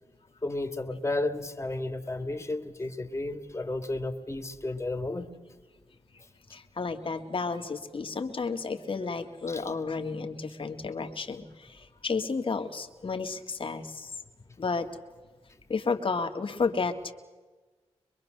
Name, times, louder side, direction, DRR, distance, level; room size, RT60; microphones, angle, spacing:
voice 1, 0.4-5.3 9.5-9.6, left 2 dB, 25° left, 6 dB, 1.9 m, -33 dB
voice 2, 6.5-14.1 14.6-14.9 15.7-17.1, left 4 dB, 50° left, 6 dB, 1.7 m, -32 dB
23.5 x 22.5 x 6.5 m, 1.3 s
cardioid pair, 55°, 11 cm